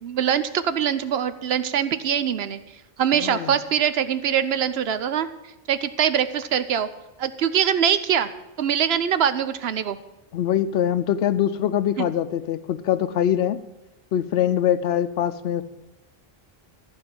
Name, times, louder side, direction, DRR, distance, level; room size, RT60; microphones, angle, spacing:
voice 1, 0.0-2.6 3.0-5.3 5.7-6.9 7.2-8.3 8.6-10.0 12.0-12.1, right 9 dB, 80° right, 12 dB, 1.0 m, -23 dB
voice 2, 3.1-3.6 10.3-13.6 14.1-15.6, left 10 dB, 85° left, 13 dB, 0.9 m, -23 dB
14.0 x 4.8 x 8.8 m, 1.0 s
omnidirectional pair, 1.0 m